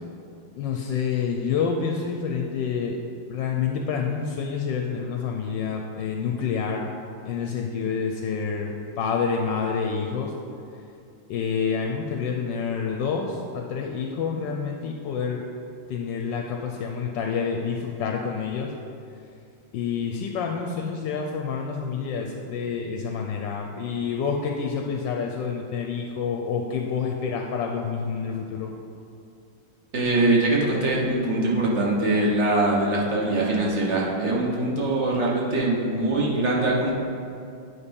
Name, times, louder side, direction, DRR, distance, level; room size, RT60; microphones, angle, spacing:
voice 1, 0.6-3.0 3.3-6.9 7.2-10.3 11.3-15.4 15.9-18.7 19.7-28.7, left 6 dB, 75° left, 2 dB, 1.2 m, -28 dB
voice 2, 29.9-36.9, right 2 dB, 40° right, -4 dB, 1.3 m, -23 dB
8.8 x 4.2 x 5.2 m, 2.5 s
omnidirectional pair, 2.1 m